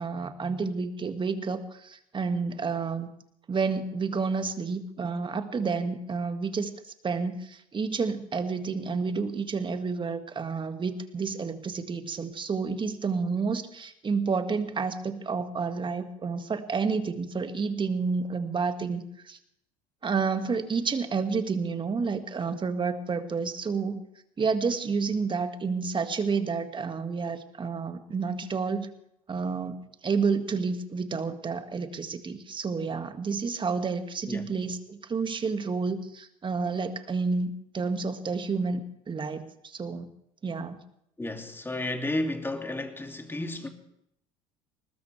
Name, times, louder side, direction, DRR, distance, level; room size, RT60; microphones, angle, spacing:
voice 1, 0.0-3.1 3.5-6.7 7.0-19.4 20.0-24.0 24.4-28.9 29.3-29.8 30.0-40.1 40.4-40.8, right 4 dB, 25° right, 1.9 m, -30 dB
voice 2, 41.2-43.7, left 1 dB, 10° left, 2.6 m, -32 dB
20.5 x 20.0 x 3.3 m
hypercardioid pair, 70°, 18 cm